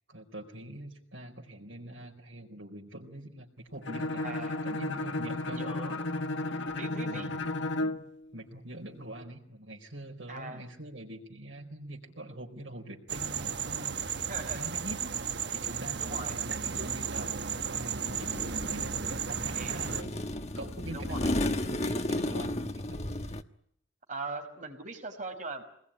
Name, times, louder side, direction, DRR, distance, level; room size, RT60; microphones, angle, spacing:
voice 1, 0.1-5.7 7.1-7.4 7.8-7.9 8.3-15.2 15.5-20.2 20.5-23.1, right 1 dB, 75° right, -1 dB, 4.5 m, -44 dB
Bowed string instrument, 3.8-8.1, left 2 dB, 70° left, 1.7 m, -33 dB
voice 2, 4.2-4.6 5.5-6.0 6.7-7.3 10.3-10.6 14.2-14.7 16.0-16.4 19.5-19.8 20.9-21.3 24.1-25.6, right 3 dB, 40° right, 4 dB, 5.5 m, -40 dB
sound 1, 13.1-20.0, right 7 dB, 55° right, 1.2 m, -34 dB
sound 2, 18.0-23.4, left 1 dB, 35° left, 1.3 m, -33 dB
27.0 x 20.5 x 10.0 m, 0.74 s
head